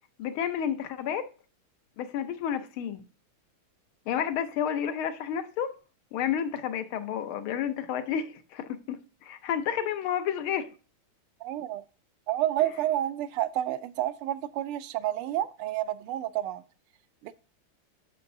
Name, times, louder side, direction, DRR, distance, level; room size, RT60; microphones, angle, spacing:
voice 1, 0.2-1.3 2.0-3.0 4.1-5.7 6.1-10.7 12.6-12.7, left 9 dB, 80° left, 1.6 m, -31 dB
voice 2, 11.4-11.8 12.3-16.6 17.2-17.4, right 13 dB, 85° right, 1.5 m, -30 dB
9.3 x 6.6 x 2.6 m
omnidirectional pair, 2.3 m